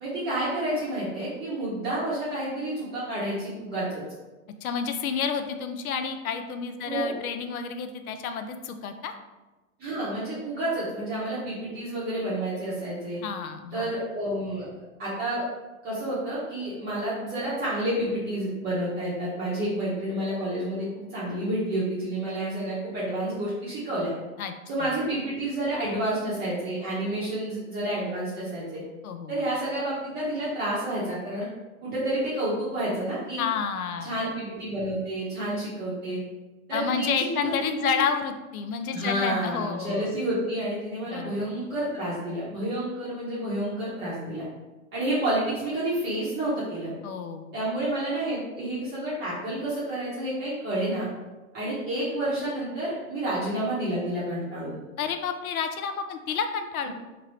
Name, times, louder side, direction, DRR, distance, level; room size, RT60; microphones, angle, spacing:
voice 1, 0.0-4.0 6.8-7.1 9.8-13.2 13.7-14.7 15.0-15.4 15.8-24.1 24.7-28.8 29.3-31.5 31.8-33.4 34.0-36.2 36.7-38.0 38.9-44.4 44.9-46.9 47.5-51.1 51.5-54.8, right 1 dB, 25° right, -8 dB, 0.8 m, -29 dB
voice 2, 4.6-9.1 13.2-13.9 24.4-24.5 24.8-24.9 29.0-29.3 33.4-34.2 36.7-40.2 41.1-41.5 47.0-47.6 55.0-56.9, left 6 dB, 85° left, 8 dB, 0.5 m, -30 dB
2.9 x 2.6 x 3.0 m, 1.2 s
hypercardioid pair, 130°, 42 cm